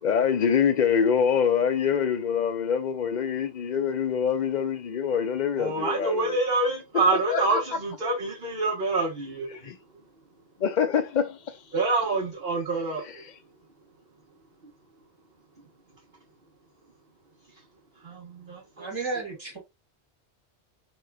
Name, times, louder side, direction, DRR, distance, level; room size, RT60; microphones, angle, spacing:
voice 1, 0.0-6.4 7.3-7.6 9.6-9.8 10.6-11.5, left 7 dB, 55° left, 0.6 m, -25 dB
voice 2, 5.6-9.6 11.7-13.2 18.0-18.9, right 3 dB, 55° right, 1.3 m, -27 dB
voice 3, 18.8-19.6, right 3 dB, 25° right, 1.8 m, -32 dB
4.4 x 3.0 x 2.3 m
omnidirectional pair, 1.1 m